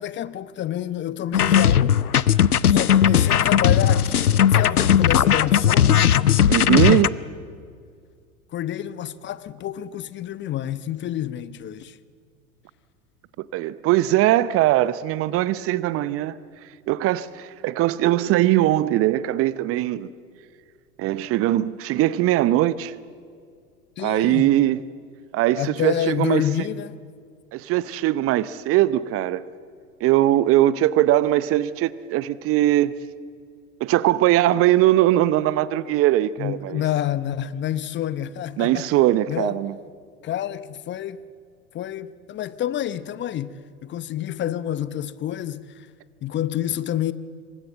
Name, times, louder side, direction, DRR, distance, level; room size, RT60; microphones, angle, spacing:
voice 1, 0.0-2.0 2.7-6.0 8.5-12.0 24.0-24.5 25.6-26.9 36.4-38.9 39.3-39.5 40.2-41.2 41.7-45.9 46.2-47.1, left 11 dB, 25° left, 0.8 m, -28 dB
sound 1, 1.3-7.1, left 9 dB, 80° left, 0.8 m, -17 dB
voice 2, 6.5-7.2 13.4-20.1 21.0-23.0 24.0-24.8 25.3-26.4 27.5-29.4 30.0-33.0 33.8-36.8 38.6-39.7, right 14 dB, 30° right, 0.8 m, -20 dB
27.0 x 24.0 x 7.6 m
figure-of-eight pair, 90°, 44 cm